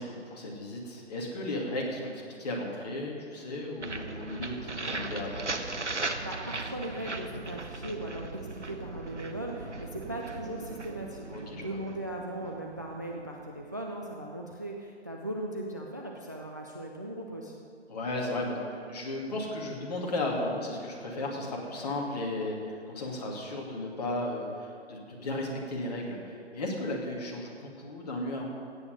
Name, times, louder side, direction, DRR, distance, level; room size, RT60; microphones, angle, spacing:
voice 1, 0.0-5.4 11.3-11.8 17.9-28.4, left 1 dB, 35° left, -1 dB, 2.5 m, -35 dB
sound 1, 3.8-13.6, right 3 dB, 90° right, 1.1 m, -38 dB
voice 2, 6.2-17.6, right 1 dB, 15° right, 1 dB, 0.4 m, -38 dB
16.5 x 9.1 x 5.3 m, 2.3 s
figure-of-eight pair, 140°, 34 cm